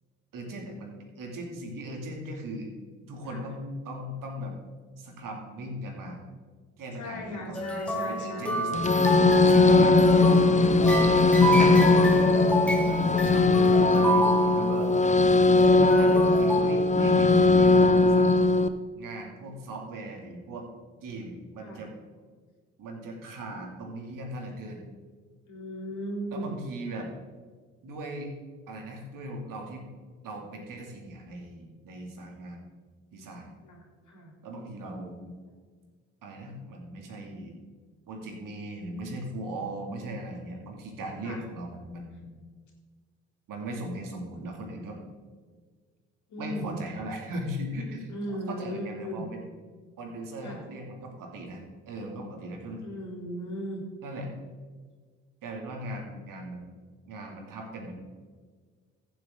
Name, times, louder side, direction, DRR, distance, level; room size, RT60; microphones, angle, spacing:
voice 1, 0.3-2.7 3.1-4.5 5.0-6.2 6.8-8.8 9.4-10.7 11.7-12.1 12.8-14.9 16.0-18.3 19.0-20.7 21.0-21.9 22.8-24.9 26.3-27.1 27.8-28.3 28.7-29.9 30.2-32.7 33.1-33.5 34.4-35.3 36.2-37.6 38.1-42.3 43.5-45.0 46.4-48.1 48.5-49.5 50.0-52.8 54.0-54.3 55.4-56.7 57.1-57.9, right 1 dB, 60° right, 1 dB, 2.6 m, -38 dB
voice 2, 6.9-8.6 21.6-21.8 25.5-26.5 33.6-34.3 41.2-41.4 46.3-46.8 48.1-49.3 50.4-50.6 52.8-53.8, equal, 50° left, 0 dB, 3.5 m, -37 dB
sound 1, 7.5-15.2 15.6-16.6, right 1 dB, 5° left, 1.9 m, -30 dB
sound 2, 8.7-18.7, left 3 dB, 20° left, 0.7 m, -20 dB
14.5 x 7.8 x 3.8 m, 1.5 s
hypercardioid pair, 50°, 37 cm